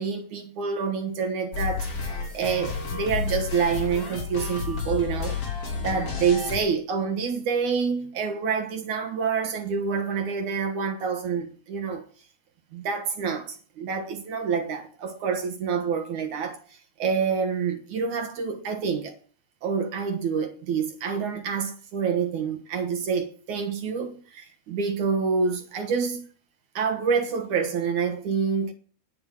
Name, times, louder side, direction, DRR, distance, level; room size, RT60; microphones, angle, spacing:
voice 1, 0.0-1.9 2.3-5.4 5.8-12.0 12.7-19.2 19.6-26.3 26.8-28.7, right 6 dB, 60° right, 2.5 m, -27 dB
sound 1, 1.5-6.6, left 5 dB, 40° left, 3.6 m, -31 dB
10.5 x 8.6 x 8.9 m
omnidirectional pair, 4.5 m